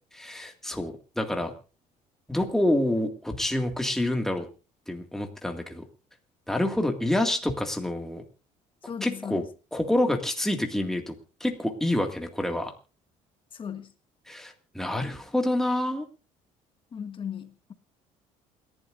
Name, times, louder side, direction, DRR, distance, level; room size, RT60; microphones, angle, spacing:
voice 1, 0.2-1.5 2.3-4.5 4.9-5.8 6.5-8.2 9.0-9.4 9.7-11.1 11.4-12.7 14.3-16.1, left 1 dB, 5° left, 2.1 m, -27 dB
voice 2, 8.9-9.4 13.6-13.9 16.9-17.7, left 7 dB, 35° left, 1.6 m, -36 dB
28.0 x 11.5 x 2.6 m
cardioid pair, 120°, 14 cm